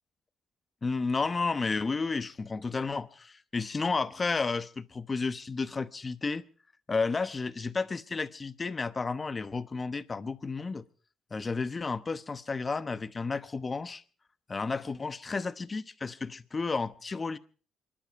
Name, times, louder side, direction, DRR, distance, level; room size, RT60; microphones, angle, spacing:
voice 1, 0.8-6.4 6.9-10.8 11.3-14.0 14.5-17.4, left 4 dB, 30° left, 1.0 m, -32 dB
27.5 x 11.5 x 4.6 m
cardioid pair, 90°, 0 cm